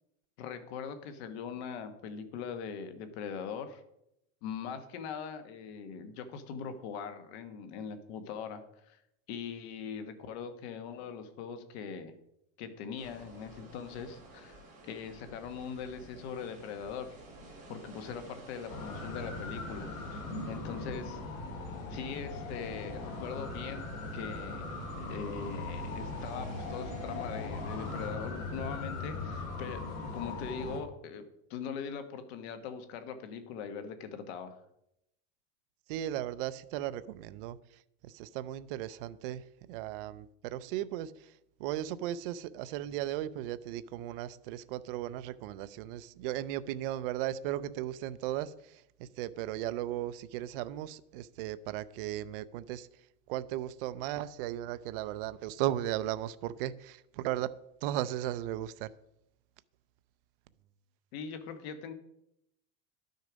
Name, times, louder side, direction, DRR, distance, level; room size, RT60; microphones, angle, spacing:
voice 1, 0.4-3.8 4.4-9.0 9.3-12.1 12.6-14.6 14.8-17.1 17.7-21.2 21.9-23.8 24.1-31.2 31.5-34.6 61.1-61.9, left 6 dB, 50° left, 1.4 m, -41 dB
sound 1, 13.0-28.1, right 2 dB, 20° right, 3.9 m, -52 dB
sound 2, 18.7-30.8, left 3 dB, 75° left, 3.0 m, -39 dB
voice 2, 35.9-37.6 38.0-41.3 41.6-52.9 53.3-57.5 57.8-58.9, right 13 dB, 45° right, 0.4 m, -36 dB
11.5 x 6.5 x 5.1 m
supercardioid pair, 170°, 41 cm